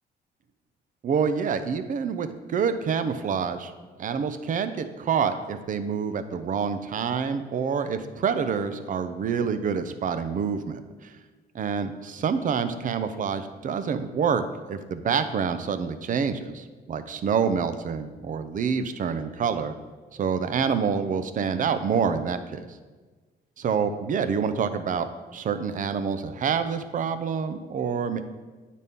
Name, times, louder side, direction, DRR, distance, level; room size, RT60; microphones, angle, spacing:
voice 1, 1.0-3.7 4.0-11.1 11.5-19.7 20.2-22.6 23.6-28.2, right 6 dB, 45° right, 10 dB, 0.5 m, -27 dB
9.2 x 4.2 x 3.6 m, 1.4 s
cardioid pair, 95°, 18 cm